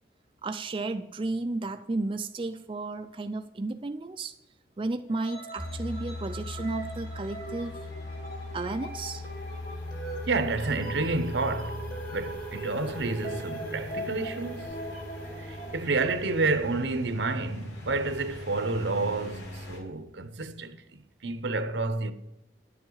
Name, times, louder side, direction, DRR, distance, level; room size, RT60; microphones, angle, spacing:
voice 1, 0.4-4.4 4.8-7.8 8.5-9.2, right 2 dB, 30° right, 0.4 m, -33 dB
sound 1, 5.1-15.8, right 1 dB, 50° left, 2.4 m, -42 dB
sound 2, 5.6-19.8, left 1 dB, 75° left, 3.8 m, -40 dB
sound 3, 8.5-17.1, right 2 dB, 5° left, 0.9 m, -44 dB
voice 2, 10.3-14.7 15.4-22.1, right 3 dB, 80° right, 0.9 m, -30 dB
10.5 x 7.3 x 4.7 m
head